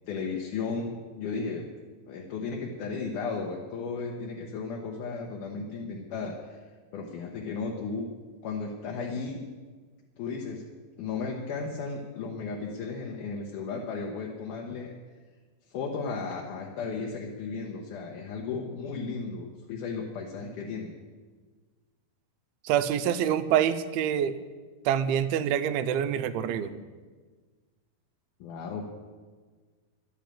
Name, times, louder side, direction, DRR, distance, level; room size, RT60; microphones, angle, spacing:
voice 1, 0.1-1.7 2.1-6.6 6.9-8.1 8.4-9.4 10.2-10.7 11.0-14.9 15.7-21.0 28.4-28.8, left 4 dB, 70° left, 0 dB, 2.3 m, -35 dB
voice 2, 22.6-24.4 24.9-26.8, right 9 dB, 90° right, 11 dB, 2.5 m, -26 dB
11.5 x 8.4 x 8.9 m, 1.4 s
omnidirectional pair, 4.3 m